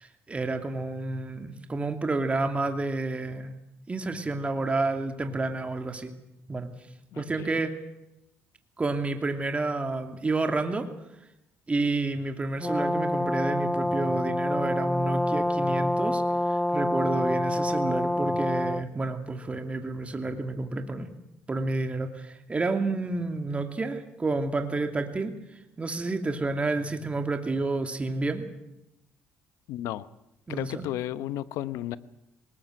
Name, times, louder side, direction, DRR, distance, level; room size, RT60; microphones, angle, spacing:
voice 1, 0.0-3.5 3.9-6.1 6.5-6.7 7.2-7.7 8.8-10.9 11.7-21.1 21.5-25.3 25.8-28.4 30.5-30.9, right 3 dB, 25° right, 5 dB, 2.6 m, -30 dB
voice 2, 7.1-7.6 29.7-30.1 30.5-32.0, left 13 dB, 85° left, 15 dB, 0.9 m, -33 dB
Brass instrument, 12.6-18.9, left 1 dB, 10° left, 0.7 m, -27 dB
20.0 x 19.5 x 7.9 m, 0.88 s
supercardioid pair, 80°, 5 cm